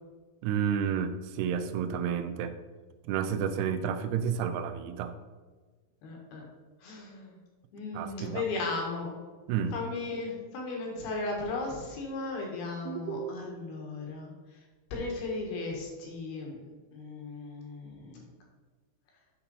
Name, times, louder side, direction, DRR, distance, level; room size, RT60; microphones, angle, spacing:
voice 1, 0.4-2.5 3.0-5.2 7.9-8.4 9.5-9.7 12.9-13.5, right 8 dB, 80° right, 9 dB, 2.4 m, -31 dB
voice 2, 6.0-6.4 6.8-7.3 7.7-9.2 9.7-14.6 14.9-16.6 16.9-18.3, left 3 dB, 70° left, 0 dB, 3.3 m, -36 dB
9.7 x 4.3 x 5.4 m, 1.4 s
omnidirectional pair, 4.9 m